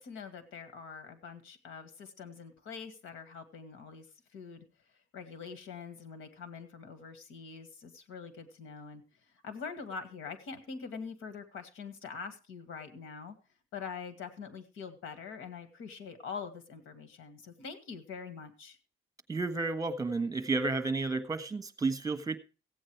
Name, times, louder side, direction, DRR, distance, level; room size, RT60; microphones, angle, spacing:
voice 1, 0.0-4.1 4.3-4.6 5.1-9.0 9.4-13.4 13.7-18.8, left 5 dB, 85° left, 10 dB, 2.1 m, -44 dB
voice 2, 19.3-22.4, right 3 dB, 20° right, 13 dB, 1.5 m, -31 dB
15.5 x 8.7 x 4.7 m, 0.33 s
cardioid pair, 90°, 20 cm